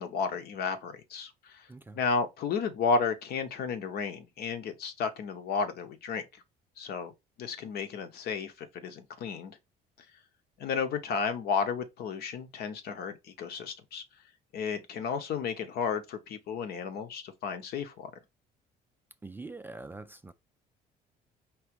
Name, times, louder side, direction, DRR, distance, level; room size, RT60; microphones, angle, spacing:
voice 1, 0.0-1.7 1.9-6.2 6.8-7.1 7.4-9.6 10.6-14.0 14.5-18.1, left 5 dB, 70° left, 0.9 m, -33 dB
voice 2, 19.2-20.3, right 3 dB, 10° right, 0.3 m, -44 dB
4.8 x 3.1 x 3.0 m
cardioid pair, 110°, 17 cm